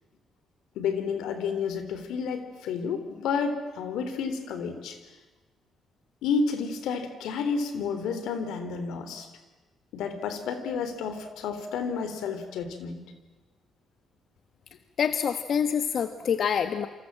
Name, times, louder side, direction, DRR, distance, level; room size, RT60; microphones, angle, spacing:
voice 1, 0.8-5.0 6.2-9.3 9.9-13.1, left 5 dB, 85° left, 9 dB, 3.6 m, -30 dB
voice 2, 15.0-16.9, left 7 dB, 60° left, 10 dB, 1.3 m, -26 dB
28.5 x 25.5 x 7.6 m, 1.2 s
cardioid pair, 90°, 0 cm